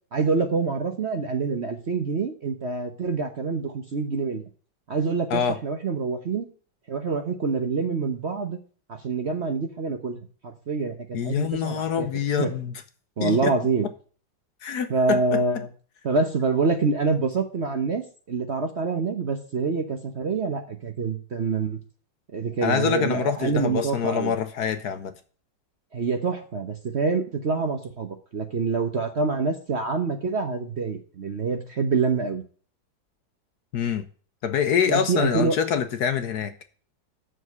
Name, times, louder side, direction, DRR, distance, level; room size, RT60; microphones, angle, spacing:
voice 1, 0.1-4.4 4.9-6.5 6.9-8.6 8.9-12.1 12.4-12.5 13.2-13.9 14.9-15.7 16.0-21.8 22.3-24.3 25.9-32.4 34.9-35.6, right 4 dB, 45° right, 5 dB, 1.0 m, -26 dB
voice 2, 11.1-12.7 13.2-13.5 14.6-15.4 22.6-25.1 33.7-34.1 34.4-36.5, left 7 dB, 65° left, 9 dB, 1.2 m, -25 dB
7.2 x 6.6 x 7.9 m, 0.41 s
omnidirectional pair, 2.1 m